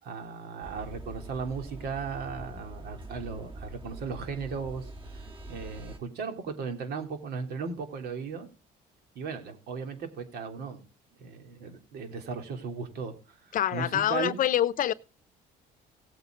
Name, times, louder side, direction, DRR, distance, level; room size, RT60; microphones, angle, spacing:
voice 1, 0.0-4.9 5.5-8.5 9.1-10.8 11.2-13.1 13.7-14.4, right 5 dB, 70° right, 3.2 m, -36 dB
sound 1, 0.6-6.0, right 2 dB, 30° right, 3.0 m, -44 dB
voice 2, 13.5-14.9, left 11 dB, 55° left, 0.8 m, -26 dB
17.5 x 8.3 x 3.9 m
cardioid pair, 110°, 17 cm